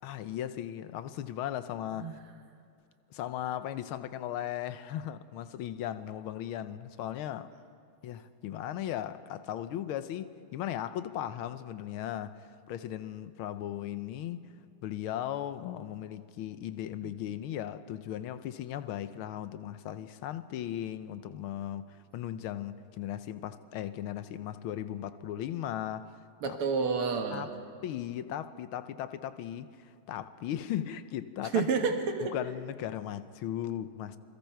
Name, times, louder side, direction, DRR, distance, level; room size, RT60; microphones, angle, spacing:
voice 1, 0.0-2.1 3.1-7.5 8.0-12.4 12.7-14.5 14.8-26.1 26.4-26.6 27.3-27.5 27.8-31.7 32.2-34.2, left 11 dB, 80° left, 1.6 m, -37 dB
voice 2, 26.4-27.5 31.5-32.3, right 5 dB, 90° right, 2.4 m, -29 dB
27.5 x 21.5 x 4.6 m
omnidirectional pair, 2.4 m